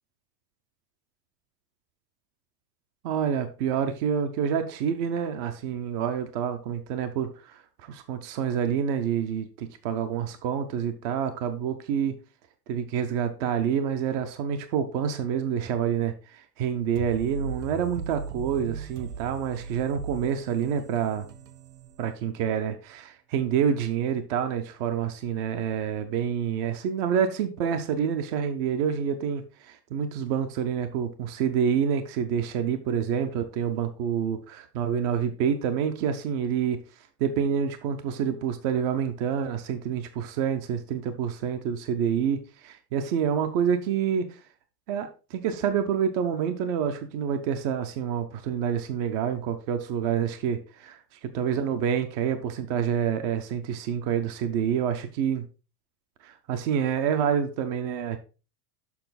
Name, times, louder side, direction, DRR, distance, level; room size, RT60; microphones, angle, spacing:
voice 1, 3.0-12.1 12.7-21.3 22.0-36.8 37.2-44.4 44.9-51.0 51.3-55.5 56.2-58.2, right 8 dB, 30° right, 8 dB, 0.4 m, -27 dB
sound 1, 17.0-22.6, right 6 dB, 75° right, 1.4 m, -39 dB
7.0 x 5.2 x 3.9 m, 0.33 s
supercardioid pair, 170°, 45 cm